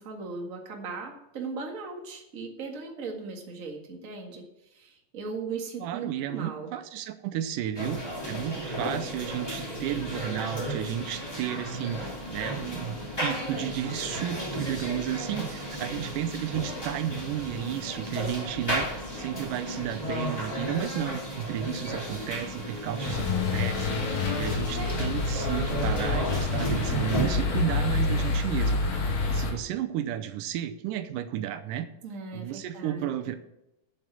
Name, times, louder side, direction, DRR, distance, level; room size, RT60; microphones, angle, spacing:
voice 1, 0.0-6.7 32.0-33.1, right 4 dB, 30° right, 1 dB, 1.6 m, -38 dB
voice 2, 5.8-31.9 32.3-33.4, right 11 dB, 90° right, 9 dB, 2.3 m, -33 dB
sound 1, 7.7-27.2, equal, 10° left, 2.2 m, -34 dB
sound 2, 23.0-29.5, left 3 dB, 85° left, 3.8 m, -28 dB
8.4 x 7.4 x 8.2 m, 0.89 s
omnidirectional pair, 3.7 m